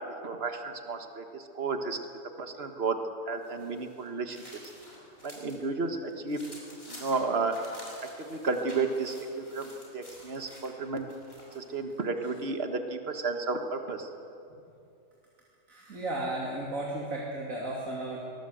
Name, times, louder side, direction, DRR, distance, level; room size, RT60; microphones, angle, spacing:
voice 1, 0.2-2.0 2.4-3.0 3.3-4.4 5.2-6.4 6.9-7.6 8.2-11.1 11.5-14.1, right 4 dB, 50° right, 6 dB, 1.8 m, -32 dB
sound 1, 3.4-5.6 6.0-11.7, left 1 dB, 45° left, 5.7 m, -50 dB
voice 2, 15.7-18.2, right 1 dB, 90° right, -4 dB, 3.3 m, -34 dB
23.5 x 19.5 x 8.0 m, 2.6 s
omnidirectional pair, 1.4 m